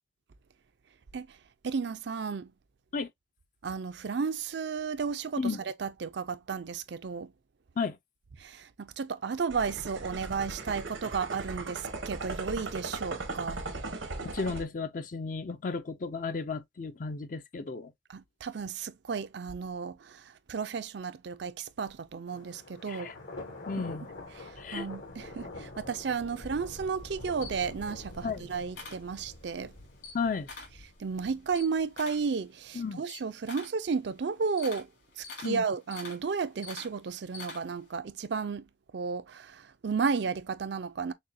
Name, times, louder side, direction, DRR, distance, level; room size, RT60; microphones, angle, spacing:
voice 1, 1.6-2.5 3.6-7.3 8.4-13.6 18.1-23.1 23.8-23.9 24.4-29.7 31.0-34.9 35.2-38.6 38.9-41.1, right 5 dB, 60° right, 0.5 m, -33 dB
sound 1, 9.5-14.7, right 3 dB, 85° right, 1.1 m, -38 dB
voice 2, 14.3-17.9 22.9-23.1 23.7-24.1 24.6-24.9 28.2-28.5 30.1-30.5 32.7-33.0 35.4-35.6, left 4 dB, 40° left, 0.4 m, -33 dB
Thunder, 22.3-32.1, left 2 dB, 90° left, 2.6 m, -46 dB
Camera, 27.0-29.6 29.9-30.8 31.2-37.9, left 4 dB, 70° left, 2.6 m, -46 dB
6.5 x 2.2 x 2.6 m
head